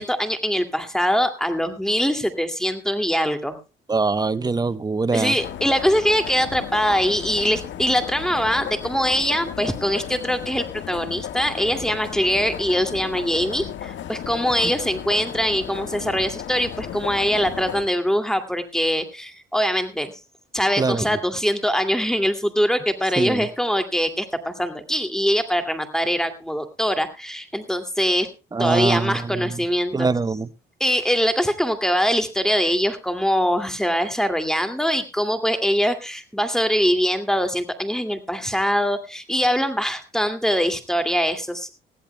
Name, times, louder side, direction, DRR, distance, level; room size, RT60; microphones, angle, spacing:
voice 1, 0.0-3.6 5.1-20.1 20.5-28.3 28.6-30.1 30.8-41.7, equal, 5° left, 8 dB, 2.3 m, -23 dB
voice 2, 3.9-5.4 14.6-14.7 20.8-21.2 23.2-23.5 28.5-29.6 29.9-30.5, right 4 dB, 20° right, 15 dB, 0.8 m, -23 dB
sound 1, 5.4-17.9, left 10 dB, 70° left, 1.5 m, -34 dB
20.5 x 15.0 x 2.2 m, 0.29 s
cardioid pair, 90°, 20 cm